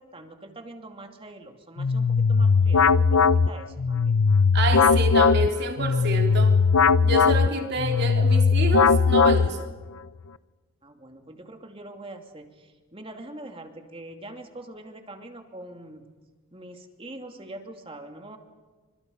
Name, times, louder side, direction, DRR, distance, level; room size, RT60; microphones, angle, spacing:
voice 1, 0.0-4.2 10.8-16.2 16.5-18.4, right 1 dB, 25° right, 2.6 m, -43 dB
sound 1, 1.8-9.8, left 5 dB, 75° left, 0.6 m, -19 dB
voice 2, 4.5-6.6 7.0-9.7, right 2 dB, 50° right, 3.4 m, -28 dB
29.0 x 26.0 x 5.4 m
head